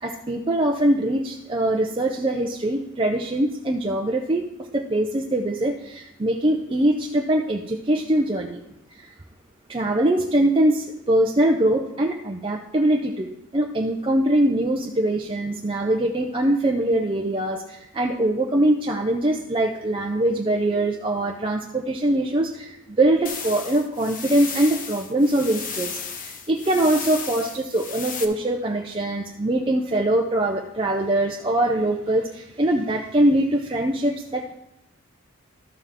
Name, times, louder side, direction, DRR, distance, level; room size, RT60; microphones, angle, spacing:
voice 1, 0.0-8.6 8.9-9.1 9.7-34.5, right 1 dB, 25° right, 0 dB, 0.5 m, -23 dB
sound 1, 23.3-28.3, left 6 dB, 40° left, 0.7 m, -34 dB
13.0 x 6.9 x 3.6 m, 0.89 s
head